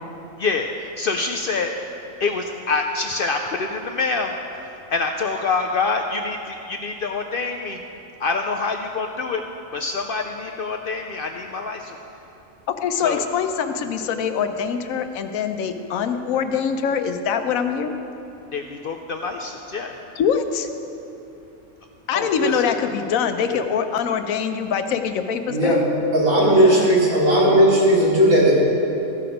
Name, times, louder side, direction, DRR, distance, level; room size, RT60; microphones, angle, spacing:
voice 1, 0.4-1.8 2.2-4.3 4.7-7.8 8.2-9.4 9.7-12.0 12.9-13.2 18.5-20.0 22.1-22.6 26.5-26.9, left 4 dB, 65° left, 4 dB, 0.5 m, -26 dB
voice 2, 12.7-17.9 20.2-20.7 22.1-25.8, left 7 dB, 90° left, 8 dB, 1.1 m, -24 dB
voice 3, 25.5-25.8 26.1-28.6, right 1 dB, 85° right, -7 dB, 3.1 m, -16 dB
14.5 x 5.9 x 5.1 m, 2.9 s
omnidirectional pair, 1.4 m